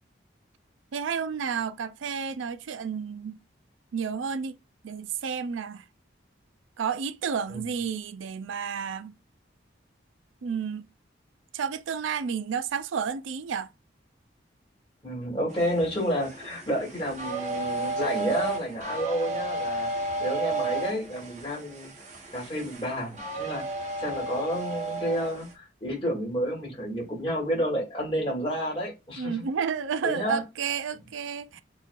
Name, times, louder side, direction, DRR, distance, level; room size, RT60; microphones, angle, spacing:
voice 1, 0.9-3.4 3.9-4.6 4.8-5.8 6.8-9.1 10.4-10.9 11.5-13.7 29.2-31.6, right 6 dB, 80° right, 0.4 m, -31 dB
voice 2, 15.0-19.9 20.2-21.9 22.3-29.4 30.0-30.4, equal, 30° left, 2.6 m, -30 dB
sound 1, 15.5-25.5, right 2 dB, 40° right, 1.2 m, -33 dB
6.7 x 3.1 x 2.5 m
head